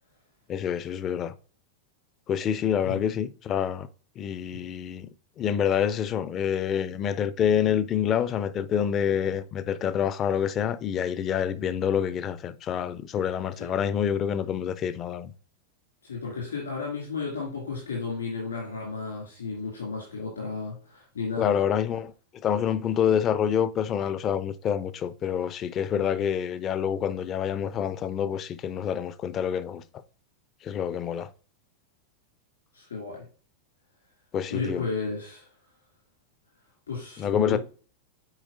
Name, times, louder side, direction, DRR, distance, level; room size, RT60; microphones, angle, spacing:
voice 1, 0.5-1.3 2.3-3.9 4.2-5.1 5.4-15.3 21.4-29.8 30.6-31.3 34.3-34.8 37.2-37.6, left 8 dB, 30° left, 0.5 m, -27 dB
voice 2, 16.0-21.6 32.7-33.2 34.5-35.5 36.9-37.6, left 4 dB, 70° left, 2.4 m, -33 dB
8.9 x 4.8 x 2.6 m
figure-of-eight pair, 90°, 0 cm